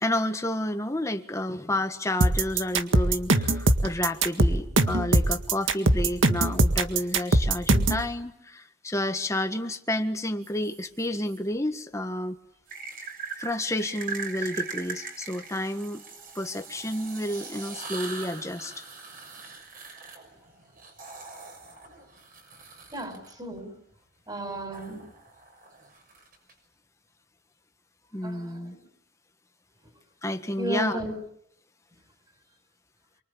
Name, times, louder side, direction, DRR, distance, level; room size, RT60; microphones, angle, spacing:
voice 1, 0.0-12.4 13.4-16.1 16.4-18.8 28.1-28.8 30.2-31.0, left 1 dB, 15° left, 7 dB, 1.6 m, -30 dB
sound 1, 2.2-8.0, right 2 dB, 85° right, 1.8 m, -21 dB
sound 2, 10.4-11.4 12.7-23.3 24.7-26.5, right 4 dB, 45° right, 6.5 m, -41 dB
voice 2, 22.9-23.7 24.3-25.1 28.2-28.9 30.6-31.1, right 1 dB, 20° right, 7 dB, 5.5 m, -34 dB
27.5 x 24.5 x 8.5 m, 0.70 s
head